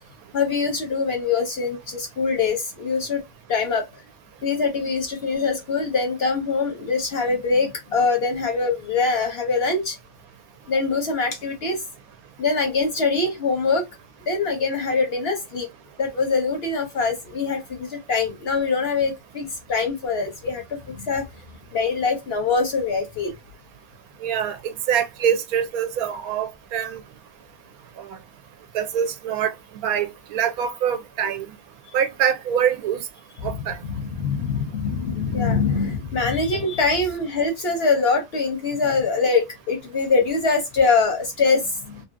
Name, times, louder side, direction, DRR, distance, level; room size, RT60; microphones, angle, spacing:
voice 1, 0.3-3.2 3.5-4.0 4.4-10.0 10.7-11.8 12.4-13.9 14.3-15.7 16.0-21.3 21.7-23.3 33.4-33.6 33.8-42.0, left 4 dB, 55° left, 0.7 m, -23 dB
voice 2, 24.2-27.0 28.7-29.5 29.8-31.5 31.9-33.0 33.4-33.8, right 8 dB, 80° right, 1.1 m, -24 dB
2.7 x 2.6 x 2.4 m
omnidirectional pair, 1.5 m